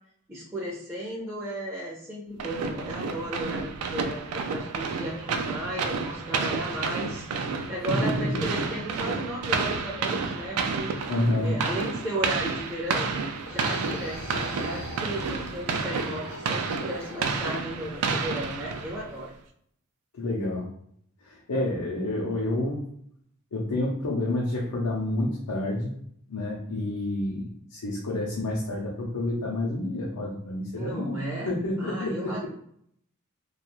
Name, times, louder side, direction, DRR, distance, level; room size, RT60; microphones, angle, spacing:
voice 1, 0.3-4.2 4.5-10.9 11.4-13.1 13.4-19.3 30.8-31.5 31.8-32.5, right 1 dB, 10° right, -6 dB, 0.4 m, -35 dB
sound 1, 2.4-19.2, right 4 dB, 80° right, 0.3 m, -30 dB
voice 2, 7.9-8.5 11.1-11.6 20.1-20.6 21.2-22.9 23.5-25.9 26.3-31.1 31.5-32.5, left 1 dB, 90° left, -4 dB, 0.6 m, -29 dB
sound 2, 13.3-18.1, left 1 dB, 45° left, 0.5 m, -41 dB
2.4 x 2.3 x 2.9 m, 0.68 s
head